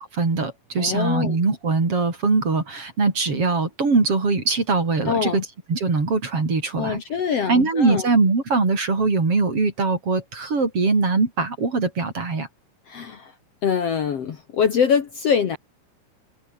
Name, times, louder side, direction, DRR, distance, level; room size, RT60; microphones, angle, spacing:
voice 1, 0.2-5.4 5.7-7.0 7.5-12.5, right 4 dB, 40° right, 5.7 m, -22 dB
voice 2, 0.8-1.4 5.1-5.4 6.8-8.1 12.9-13.3 13.6-15.6, left 7 dB, 50° left, 2.4 m, -23 dB
omnidirectional pair, 3.9 m